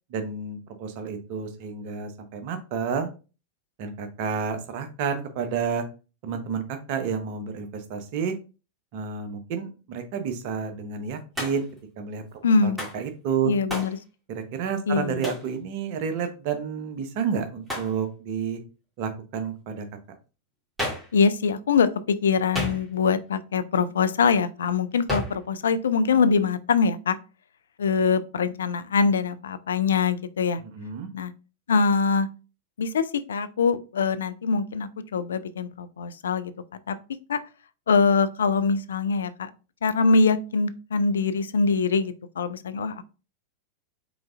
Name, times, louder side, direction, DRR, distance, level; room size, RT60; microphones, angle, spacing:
voice 1, 0.1-3.1 3.8-5.8 6.2-8.3 8.9-11.7 12.0-12.2 12.6-13.5 14.3-18.6 19.0-19.9 30.6-31.1, right 6 dB, 45° right, 7 dB, 0.8 m, -30 dB
Hands, 11.4-11.8 12.8-13.0 13.7-14.0 15.2-15.5 17.7-18.0 20.8-21.2 22.5-23.1 25.1-25.4, left 1 dB, 5° right, 2.2 m, -31 dB
voice 2, 12.4-12.8 13.4-14.0 14.9-15.3 21.1-27.2 27.8-30.6 31.1-31.3 31.7-32.3 32.8-36.5 36.9-37.0 37.3-37.4 37.9-39.5 39.8-43.0, left 5 dB, 65° left, 13 dB, 0.3 m, -23 dB
5.0 x 3.6 x 2.4 m, 0.33 s
figure-of-eight pair, 90°, 0 cm